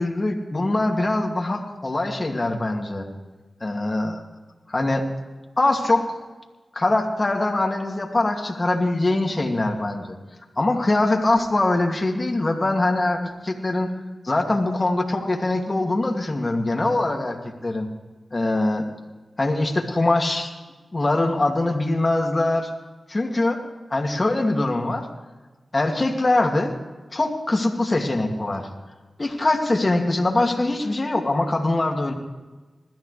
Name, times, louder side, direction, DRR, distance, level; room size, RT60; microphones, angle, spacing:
voice 1, 0.0-3.1 3.6-4.2 4.7-5.0 5.6-6.2 6.7-10.2 10.6-13.9 14.2-17.4 17.6-17.9 18.3-18.9 19.4-20.5 20.9-22.7 23.1-23.6 23.9-25.1 25.7-26.7 27.1-28.7 29.2-32.1, left 2 dB, 40° left, 1 dB, 2.4 m, -22 dB
21.0 x 13.5 x 3.4 m, 1.2 s
cardioid pair, 40°, 0 cm